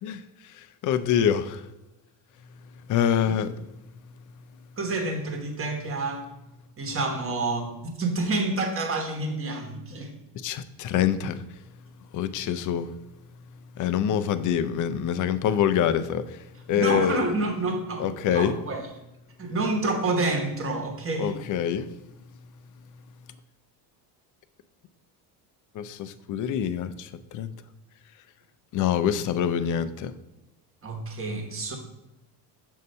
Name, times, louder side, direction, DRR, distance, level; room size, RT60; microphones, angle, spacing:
voice 1, 0.0-1.7 2.9-3.6 10.3-11.4 12.1-12.9 13.7-17.2 18.0-18.6 21.2-21.9 25.7-27.5 28.7-30.1, left 9 dB, 45° left, 12 dB, 0.4 m, -26 dB
voice 2, 4.8-6.2 6.8-10.1 16.8-18.8 19.4-21.3 30.8-31.8, right 2 dB, 30° right, 3 dB, 1.2 m, -28 dB
6.5 x 2.7 x 5.3 m, 0.94 s
supercardioid pair, 105°, 45 cm